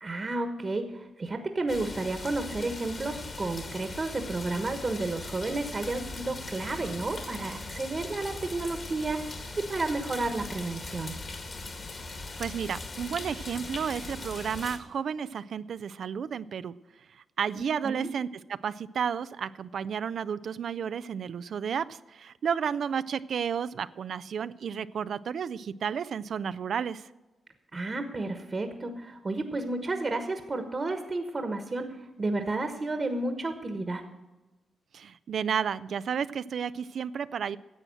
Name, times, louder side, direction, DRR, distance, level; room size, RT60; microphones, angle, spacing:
voice 1, 0.0-11.2 17.8-18.1 27.7-34.0, right 2 dB, 35° right, 7 dB, 1.2 m, -32 dB
sound 1, 1.7-14.8, left 3 dB, 45° left, 2.0 m, -40 dB
voice 2, 12.4-16.8 17.1-27.1 34.9-37.6, right 7 dB, 65° right, 15 dB, 0.4 m, -32 dB
11.0 x 7.7 x 7.7 m, 1.1 s
cardioid pair, 70°, 0 cm